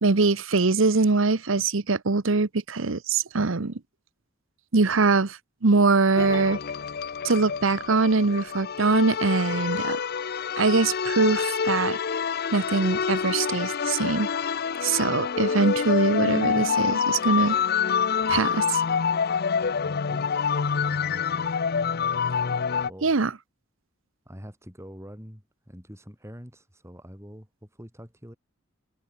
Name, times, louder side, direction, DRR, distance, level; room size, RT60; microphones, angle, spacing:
voice 1, 0.0-3.7 4.7-6.6 7.2-10.0 10.6-12.0 12.5-14.3 14.8-17.6 18.3-18.8 23.0-23.3, right 3 dB, 70° right, 1.0 m, -23 dB
sound 1, 6.2-22.9, left 6 dB, 50° left, 0.6 m, -27 dB
voice 2, 19.8-20.3 20.7-21.5 22.8-23.2 24.3-28.4, equal, 15° right, 5.6 m, -45 dB
head